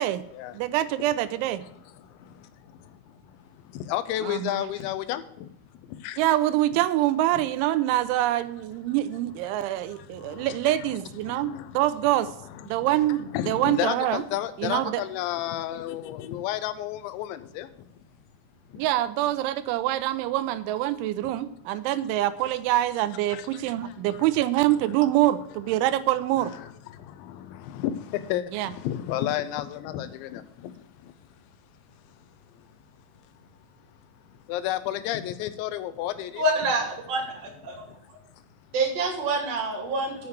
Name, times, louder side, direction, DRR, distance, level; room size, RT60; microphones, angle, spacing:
voice 1, 0.5-1.6 4.2-4.6 6.2-12.3 12.7-14.2 14.6-15.0 18.8-26.5 28.5-28.7, right 14 dB, 85° right, 13 dB, 3.0 m, -25 dB
voice 2, 2.0-5.5 5.8-6.2 9.6-11.0 11.2-11.8 12.5-17.9 18.7-18.8 21.2-21.3 23.3-24.3 24.7-24.9 26.4-31.1 32.1-32.2 32.6-32.7 33.3-33.5 34.3-36.4 37.7-38.0 38.4-38.5, left 12 dB, 80° left, 12 dB, 2.9 m, -33 dB
voice 3, 36.4-37.7 38.7-40.3, right 2 dB, 40° right, 0 dB, 2.9 m, -27 dB
7.0 x 6.5 x 7.9 m, 0.76 s
omnidirectional pair, 5.4 m